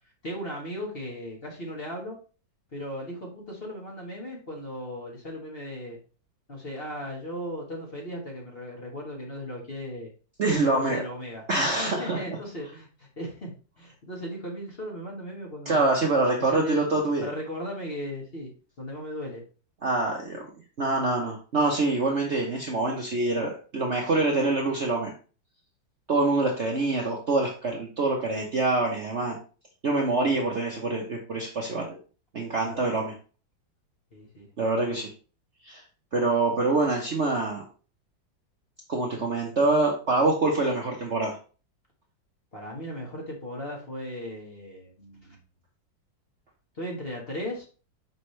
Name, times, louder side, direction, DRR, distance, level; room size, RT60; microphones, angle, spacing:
voice 1, 0.2-2.2 2.7-6.0 6.5-10.1 10.6-15.9 16.4-16.8 17.2-18.5 18.8-19.4 30.2-30.5 32.6-33.1 34.1-34.5 42.5-45.4 46.7-47.7, equal, 30° left, -1 dB, 1.5 m, -37 dB
voice 2, 10.4-11.0 11.5-12.2 15.7-17.2 19.8-20.5 20.8-25.1 26.1-29.4 29.8-32.0 32.3-33.1 34.6-35.1 35.6-35.8 36.1-37.6 38.9-41.4, right 2 dB, 45° right, -1 dB, 1.0 m, -25 dB
5.9 x 5.3 x 3.2 m, 0.37 s
omnidirectional pair, 2.1 m